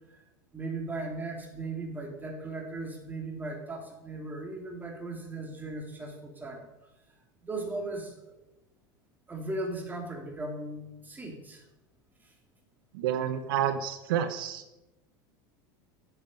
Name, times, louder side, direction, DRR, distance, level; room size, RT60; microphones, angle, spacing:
voice 1, 0.5-6.7 7.4-8.3 9.3-11.6 12.2-12.3, right 2 dB, 15° right, 2 dB, 2.9 m, -37 dB
voice 2, 12.9-14.6, right 9 dB, 75° right, 10 dB, 0.8 m, -29 dB
9.8 x 8.0 x 5.4 m, 0.98 s
supercardioid pair, 105°, 12 cm